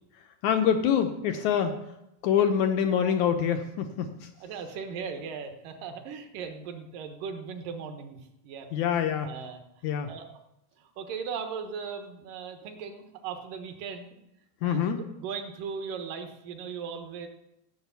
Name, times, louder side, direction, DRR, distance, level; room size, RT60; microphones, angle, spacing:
voice 1, 0.4-1.8 2.2-4.1 8.7-9.3 9.8-10.1 14.6-15.0, left 8 dB, 75° left, 7 dB, 1.8 m, -25 dB
voice 2, 4.4-8.7 9.0-10.3 10.8-14.2 14.6-14.8 15.2-17.3, right 6 dB, 70° right, 6 dB, 2.7 m, -38 dB
15.0 x 6.5 x 8.1 m, 0.85 s
omnidirectional pair, 4.2 m